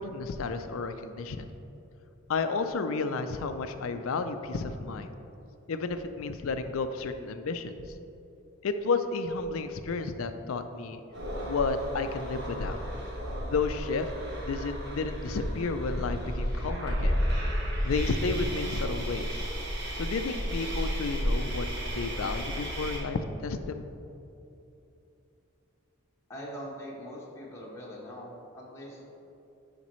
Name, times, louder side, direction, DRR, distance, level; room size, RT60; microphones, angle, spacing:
voice 1, 0.0-1.5 2.3-5.1 5.7-7.8 8.6-11.0 11.5-12.8 13.4-14.1 14.5-17.2 17.8-19.5 20.0-23.9, left 4 dB, 70° left, 9 dB, 0.4 m, -32 dB
sound 1, 11.1-23.0, equal, 50° right, 1.3 m, -32 dB
voice 2, 26.3-29.0, equal, 15° left, -5 dB, 1.0 m, -42 dB
9.6 x 5.1 x 3.1 m, 2.8 s
head